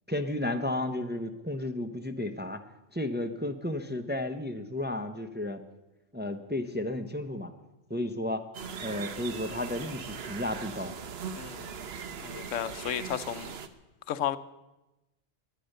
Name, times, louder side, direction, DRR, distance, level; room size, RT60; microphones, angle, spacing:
voice 1, 0.1-2.6 2.9-5.6 6.1-7.5 7.9-8.5 8.8-10.9, left 1 dB, 10° right, 6 dB, 0.7 m, -33 dB
sound 1, 8.5-13.7, right 6 dB, 60° right, 1.1 m, -40 dB
voice 2, 11.4-11.8 12.2-13.5 14.1-14.4, left 10 dB, 80° left, 14 dB, 1.0 m, -33 dB
21.5 x 8.6 x 6.6 m, 1.0 s
omnidirectional pair, 1.3 m